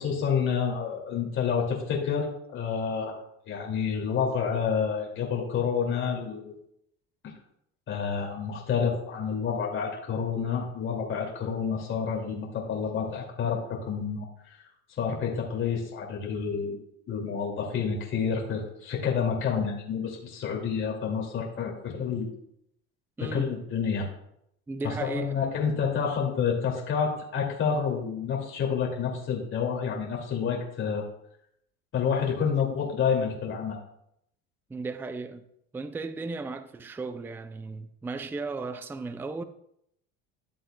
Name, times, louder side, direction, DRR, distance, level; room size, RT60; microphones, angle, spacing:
voice 1, 0.0-3.2 3.5-6.5 7.9-14.6 15.0-16.8 17.1-22.3 23.2-24.1 24.8-31.0 31.9-33.8, left 6 dB, 40° left, 2.3 m, -29 dB
voice 2, 23.2-23.6 24.7-25.3 34.7-35.5 35.7-39.4, right 3 dB, 5° right, 0.4 m, -35 dB
12.5 x 7.7 x 2.2 m
supercardioid pair, 115°, 31 cm